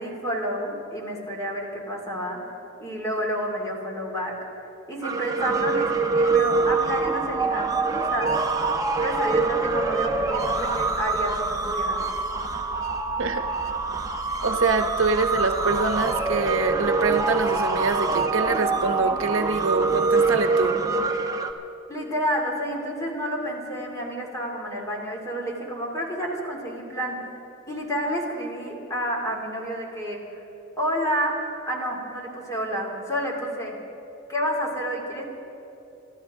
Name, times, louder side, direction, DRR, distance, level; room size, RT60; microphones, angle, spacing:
voice 1, 0.0-2.4 2.8-4.3 4.9-7.7 8.0-8.4 9.0-12.0 21.9-27.2 27.7-30.2 30.8-31.4 31.7-33.8 34.3-35.2, equal, 15° left, -1 dB, 2.7 m, -29 dB
sound 1, 5.0-21.5, right 3 dB, 20° right, 0.9 m, -25 dB
voice 2, 14.4-20.8, right 3 dB, 75° right, 7 dB, 0.9 m, -25 dB
29.0 x 13.0 x 3.7 m, 2.9 s
head